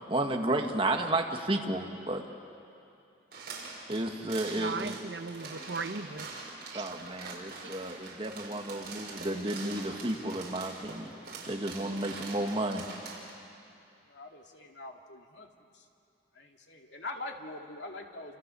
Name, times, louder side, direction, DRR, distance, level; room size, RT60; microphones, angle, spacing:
voice 1, 0.0-2.2 3.9-5.0 6.7-11.1 11.5-12.9, right 1 dB, 30° right, 2 dB, 1.8 m, -32 dB
sound 1, 3.3-13.3, right 3 dB, 55° right, 5.8 m, -44 dB
voice 2, 4.5-6.3 6.7-6.9 7.3-7.7, right 4 dB, 70° right, 10 dB, 1.0 m, -38 dB
voice 3, 14.1-15.5 16.4-18.4, left 2 dB, 75° left, 2 dB, 2.4 m, -43 dB
28.5 x 28.0 x 7.0 m, 2.7 s
head